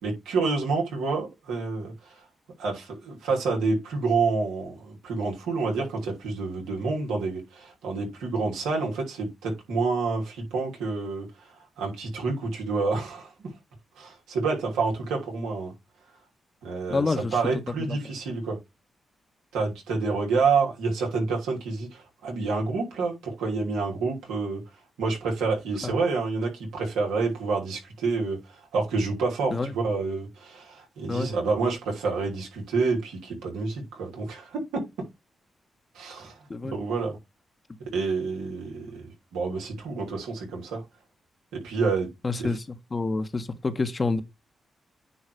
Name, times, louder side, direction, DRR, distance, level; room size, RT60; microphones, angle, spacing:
voice 1, 0.0-2.2 2.6-11.5 11.8-13.3 14.0-15.7 16.6-18.6 19.5-24.6 25.0-34.8 35.9-36.4 36.6-37.2 37.9-40.8 41.5-42.1 42.4-42.6, right 4 dB, 90° right, 3.1 m, -28 dB
voice 2, 16.9-17.3 17.9-18.0 29.5-29.7 31.1-31.3 36.5-36.7 42.2-42.6 42.9-44.2, left 3 dB, 40° left, 1.4 m, -27 dB
9.7 x 3.2 x 5.0 m
supercardioid pair, 50°, 0 cm